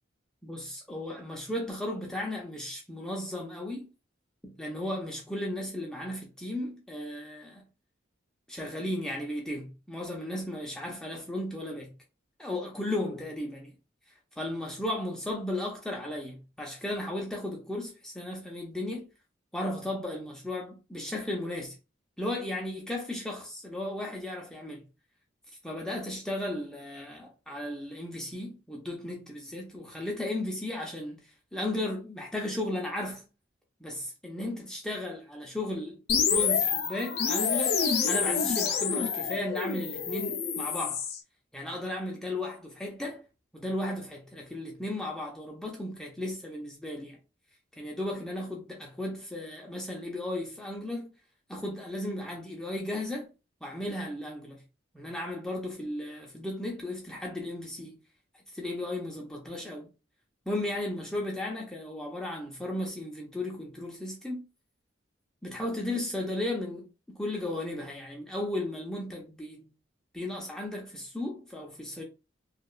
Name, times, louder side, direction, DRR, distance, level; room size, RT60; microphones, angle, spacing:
voice 1, 0.4-3.9 4.6-7.6 8.5-11.9 12.4-13.7 14.4-19.1 19.5-21.7 22.2-24.9 25.6-33.2 33.8-37.8 38.1-41.0 41.5-43.2 43.5-47.2 47.8-51.1 51.5-53.3 53.6-54.6 54.9-58.0 58.5-59.9 60.5-64.5 65.4-69.7 70.1-72.0, left 1 dB, 5° left, 0.5 m, -35 dB
sound 1, 36.1-41.2, left 6 dB, 55° left, 0.5 m, -28 dB
2.9 x 2.3 x 2.3 m
head